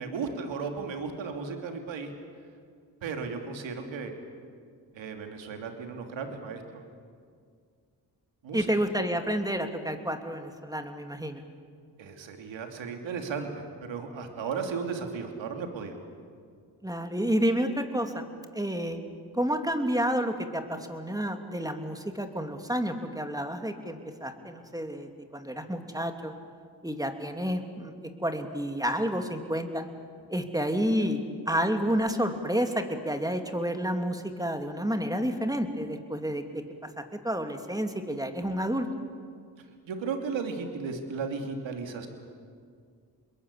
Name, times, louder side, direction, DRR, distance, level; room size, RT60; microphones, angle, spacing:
voice 1, 0.0-2.1 3.0-4.1 4.9-6.6 8.4-8.7 12.0-16.0 39.9-42.1, right 5 dB, 85° right, 4 dB, 2.8 m, -35 dB
voice 2, 8.5-11.4 16.8-18.2 18.5-19.0 19.3-26.3 26.8-27.9 28.2-29.9 30.3-36.6 37.2-38.9, equal, 10° right, 5 dB, 2.8 m, -30 dB
27.0 x 21.5 x 8.4 m, 2.1 s
cardioid pair, 60°, 44 cm